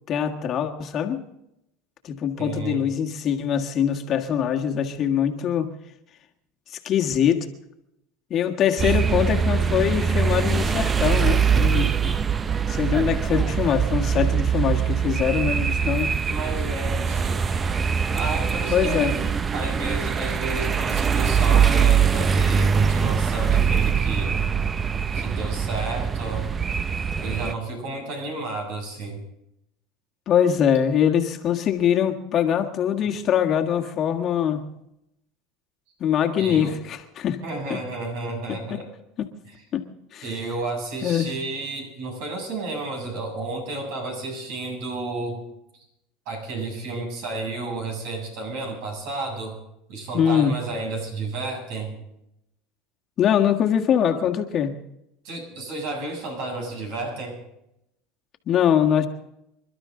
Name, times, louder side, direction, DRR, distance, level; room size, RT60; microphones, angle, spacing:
voice 1, 0.1-1.2 2.0-5.7 6.7-7.5 8.3-12.2 12.7-16.2 18.7-19.1 30.3-34.7 36.0-37.4 39.2-39.3 39.7-39.8 40.1-40.4 41.0-41.3 50.1-50.5 53.2-54.7 58.5-59.1, left 9 dB, 40° left, 4 dB, 1.6 m, -23 dB
voice 2, 2.4-2.8 16.3-17.4 18.1-19.2 19.5-24.3 25.1-26.5 27.2-29.2 36.4-36.7 37.4-38.9 40.2-45.4 46.3-49.5 49.9-52.0 55.2-57.4, right 3 dB, 70° right, 2 dB, 7.3 m, -32 dB
sound 1, 8.8-27.5, right 6 dB, 25° right, 0.7 m, -22 dB
27.5 x 12.0 x 3.8 m, 0.83 s
supercardioid pair, 115°, 0 cm